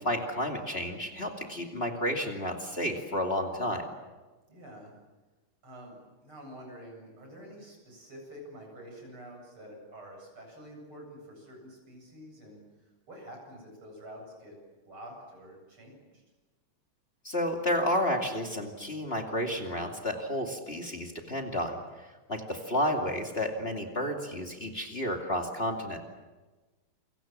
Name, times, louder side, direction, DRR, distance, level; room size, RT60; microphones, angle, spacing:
voice 1, 0.0-3.9 17.2-21.8 22.3-26.0, equal, 25° left, 2 dB, 2.8 m, -31 dB
voice 2, 4.5-4.9 5.6-16.2, equal, 75° right, 1 dB, 9.0 m, -48 dB
29.0 x 25.0 x 7.5 m, 1.2 s
omnidirectional pair, 2.4 m